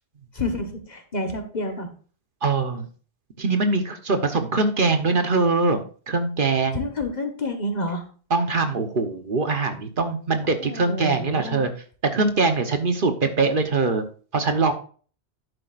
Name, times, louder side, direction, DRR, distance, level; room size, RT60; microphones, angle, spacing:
voice 1, 0.3-1.9 6.7-8.0 10.6-11.6, left 2 dB, 40° left, 5 dB, 1.3 m, -29 dB
voice 2, 2.4-2.8 3.4-6.8 8.3-11.7 12.1-14.0 14.3-14.7, right 3 dB, 50° right, 7 dB, 1.1 m, -22 dB
11.0 x 8.4 x 2.5 m, 0.40 s
omnidirectional pair, 1.1 m